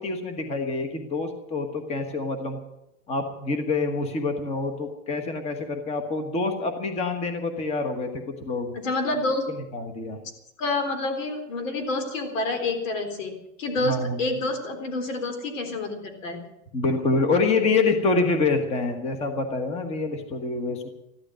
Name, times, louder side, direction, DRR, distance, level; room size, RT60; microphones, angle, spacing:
voice 1, 0.0-2.6 3.1-8.7 9.7-10.2 13.8-14.2 16.7-20.9, left 3 dB, 15° left, 7 dB, 1.3 m, -26 dB
voice 2, 8.7-9.4 10.6-13.3 13.6-16.4, left 2 dB, 70° left, 6 dB, 3.8 m, -28 dB
14.5 x 12.0 x 7.6 m, 0.85 s
supercardioid pair, 170°, 40 cm